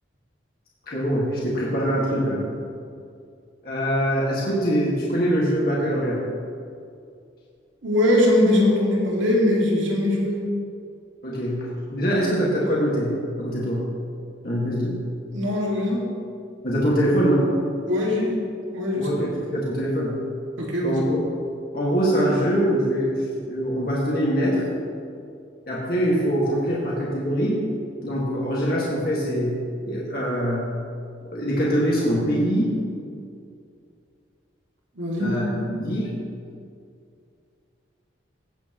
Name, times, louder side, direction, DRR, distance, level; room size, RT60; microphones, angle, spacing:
voice 1, 0.9-2.4 3.6-6.2 11.2-13.9 14.4-15.1 16.6-17.5 19.0-20.2 20.8-21.2 21.7-23.2 23.5-24.6 25.7-27.6 28.0-29.6 29.9-30.6 31.3-32.8 35.2-35.5 35.8-36.2, equal, 50° left, -6 dB, 1.9 m, -23 dB
voice 2, 7.8-10.4 15.3-16.0 17.9-18.3 18.7-19.1 20.6-21.0 35.0-35.7, left 1 dB, 85° right, -3 dB, 2.2 m, -21 dB
16.5 x 8.4 x 3.0 m, 2.4 s
head